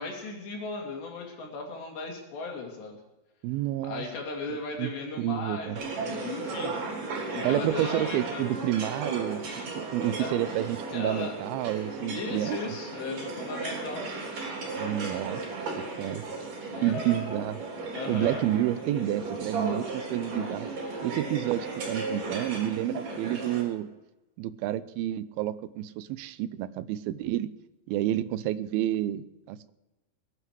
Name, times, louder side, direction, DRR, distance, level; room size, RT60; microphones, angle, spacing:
voice 1, 0.0-3.0 3.8-6.8 7.3-8.5 10.2-10.4 10.9-11.4 12.1-14.1 16.6-17.0 17.9-18.5, left 3 dB, 85° left, 0 dB, 5.0 m, -36 dB
voice 2, 3.4-4.0 4.8-4.9 5.2-5.8 7.4-9.4 9.8-12.6 14.8-15.4 16.0-16.2 16.8-17.6 18.1-20.7 21.0-23.9 24.4-27.5 27.9-29.7, right 13 dB, 80° right, 13 dB, 2.3 m, -29 dB
sound 1, 5.8-23.6, right 3 dB, 55° right, 4.8 m, -35 dB
sound 2, 13.4-14.4 15.6-15.7 16.6-18.0 19.5-19.6 20.0-20.8, left 1 dB, 30° left, 3.6 m, -44 dB
21.0 x 9.9 x 4.7 m, 1.0 s
omnidirectional pair, 4.8 m